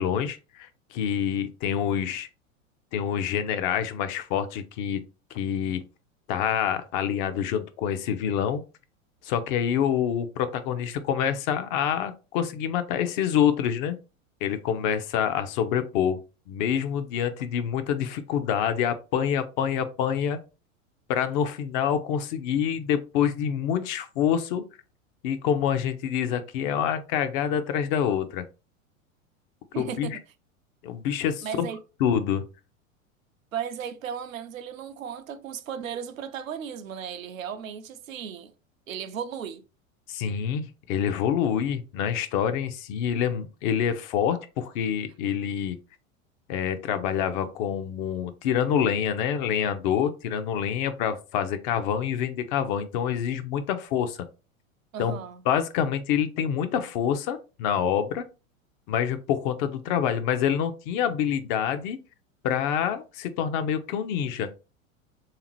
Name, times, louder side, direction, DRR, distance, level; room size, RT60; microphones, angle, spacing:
voice 1, 0.0-2.3 2.9-5.0 5.3-5.8 6.3-8.6 9.2-14.0 14.4-16.2 16.5-20.4 21.1-24.6 25.2-28.4 29.8-30.2 30.8-31.7 32.0-32.5 40.1-45.8 46.5-54.2 55.0-55.2 55.5-58.2 58.9-62.0 62.4-64.5, left 8 dB, 40° left, 0.5 m, -26 dB
voice 2, 29.7-30.2 31.4-31.8 33.5-38.5 38.9-39.6 54.9-55.4, right 8 dB, 80° right, 0.6 m, -35 dB
3.4 x 2.8 x 3.0 m
figure-of-eight pair, 90°, 40 cm